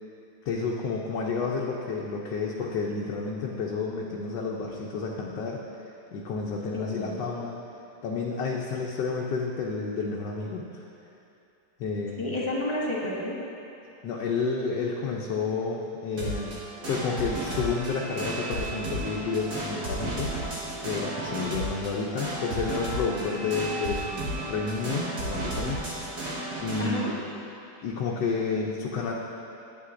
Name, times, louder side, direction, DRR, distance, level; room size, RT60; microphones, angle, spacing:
voice 1, 0.4-5.6 6.1-7.6 8.0-10.8 11.8-12.4 14.0-16.6 16.9-20.5 20.8-26.2 26.6-27.3 27.8-29.1, left 4 dB, 85° left, -2 dB, 1.3 m, -30 dB
voice 2, 6.7-7.2 12.2-13.4 23.1-23.5 26.8-27.1, left 2 dB, 20° left, -6 dB, 1.1 m, -31 dB
sound 1, 16.2-26.8, right 1 dB, 70° right, 2.1 m, -33 dB
11.0 x 8.5 x 2.5 m, 2.7 s
omnidirectional pair, 1.8 m